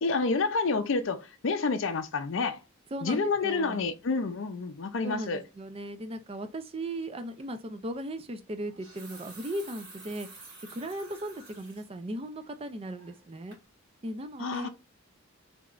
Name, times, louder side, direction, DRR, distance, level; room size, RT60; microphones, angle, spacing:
voice 1, 0.0-2.6 3.0-5.4 14.4-14.7, left 4 dB, 60° left, 0.5 m, -29 dB
voice 2, 2.9-3.8 5.0-10.3 10.7-13.6 14.0-14.7, right 1 dB, 25° right, 0.4 m, -37 dB
sound 1, 7.4-7.6 8.6-11.9 12.3-12.4 13.0-13.3 13.5-13.7, right 3 dB, 65° right, 2.0 m, -50 dB
3.4 x 3.0 x 2.4 m
head